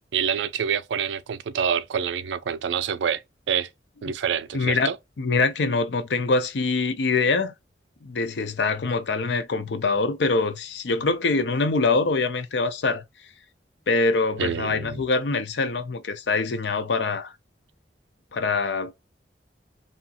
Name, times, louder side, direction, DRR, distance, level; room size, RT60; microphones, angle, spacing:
voice 1, 0.0-3.2 3.5-3.7 4.0-5.0 14.4-15.0, right 7 dB, 85° right, 0.4 m, -27 dB
voice 2, 4.5-4.9 5.2-7.5 8.0-13.0 13.9-17.3 18.3-18.9, left 3 dB, 75° left, 0.5 m, -24 dB
2.8 x 2.4 x 2.7 m
head